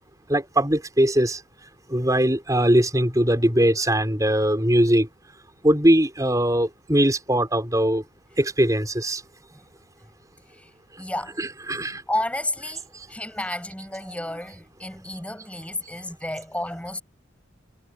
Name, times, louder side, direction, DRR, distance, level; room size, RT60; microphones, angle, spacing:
voice 1, 0.3-1.4 1.9-5.1 5.6-8.0 8.4-9.2 11.4-12.0, right 1 dB, 15° right, 5.5 m, -21 dB
voice 2, 11.0-11.4 12.1-17.0, left 1 dB, 5° left, 7.4 m, -31 dB
head